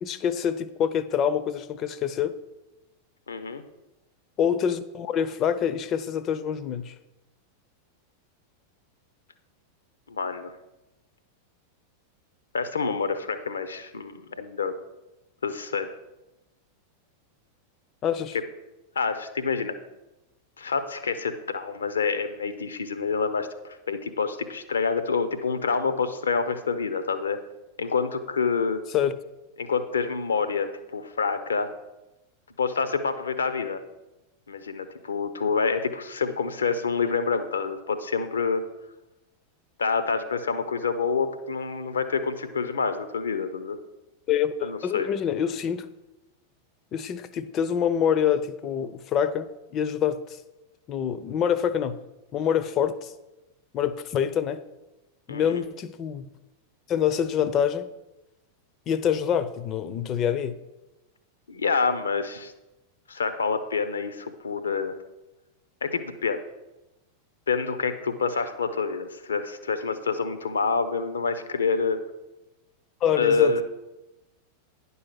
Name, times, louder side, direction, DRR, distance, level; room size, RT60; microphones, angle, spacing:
voice 1, 0.0-2.4 4.4-6.9 18.0-18.4 28.9-29.1 44.3-45.9 46.9-50.4 50.9-52.0 52.3-53.1 53.7-54.6 55.3-56.3 56.9-57.9 58.9-60.6 73.0-73.6, left 8 dB, 35° left, 14 dB, 0.6 m, -26 dB
voice 2, 3.3-3.6 10.1-10.5 12.5-14.7 15.4-15.9 18.9-19.8 20.6-27.4 27.8-28.8 29.6-31.7 32.6-33.8 34.5-38.6 39.8-43.8 44.6-45.1 55.3-55.6 61.5-62.5 63.1-65.0 65.8-66.4 67.5-72.0 73.1-73.6, left 5 dB, 70° left, 11 dB, 0.8 m, -27 dB
10.0 x 5.6 x 6.0 m, 1.0 s
figure-of-eight pair, 90°, 0 cm